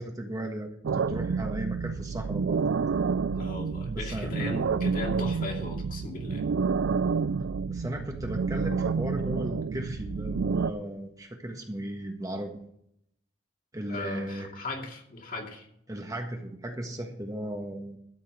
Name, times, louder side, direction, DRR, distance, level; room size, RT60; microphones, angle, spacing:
voice 1, 0.0-2.6 3.9-4.8 7.7-12.6 13.7-14.5 15.9-18.0, right 1 dB, 20° right, 3 dB, 1.5 m, -36 dB
sound 1, 0.8-10.7, right 5 dB, 85° right, 0.4 m, -29 dB
voice 2, 3.3-6.5 13.9-15.7, left 2 dB, 50° left, 0 dB, 2.5 m, -37 dB
13.0 x 5.6 x 8.2 m, 0.72 s
head